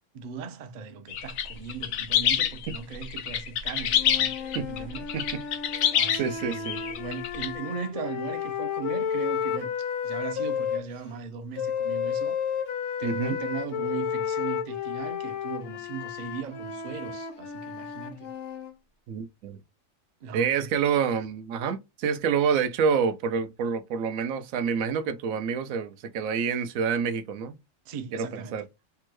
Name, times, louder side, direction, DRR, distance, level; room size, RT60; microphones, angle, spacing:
voice 1, 0.1-4.3 4.7-5.1 5.9-12.4 13.0-18.3 20.2-20.8 27.9-28.6, right 6 dB, 55° right, 0.5 m, -38 dB
sound 1, 1.1-7.5, left 9 dB, 85° left, 1.0 m, -27 dB
sound 2, 3.9-10.8 11.6-18.7, left 7 dB, 65° left, 1.0 m, -32 dB
voice 2, 5.1-5.4 6.1-6.8 13.0-13.4 19.1-19.6 20.3-27.5 28.1-28.6, right 6 dB, 85° right, 1.0 m, -27 dB
3.4 x 2.1 x 3.0 m
omnidirectional pair, 1.4 m